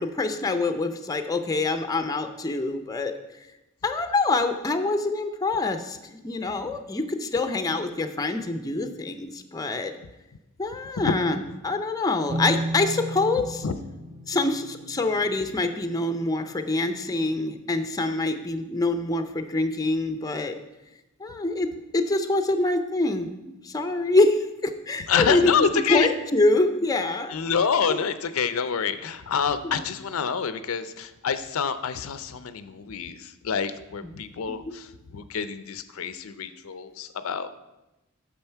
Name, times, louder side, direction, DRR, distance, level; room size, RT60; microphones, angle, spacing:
voice 1, 0.0-3.1 3.8-9.9 10.6-13.6 14.3-20.6 21.2-23.3 23.6-25.5 25.9-27.4 27.9-28.0 29.6-29.9 34.5-34.7, left 2 dB, 15° left, 7 dB, 0.5 m, -25 dB
sound 1, 12.3-17.9, right 1 dB, 30° right, 0.6 m, -35 dB
voice 2, 25.1-26.1 27.3-37.5, left 6 dB, 75° left, 12 dB, 0.5 m, -27 dB
8.9 x 6.2 x 4.5 m, 0.99 s
head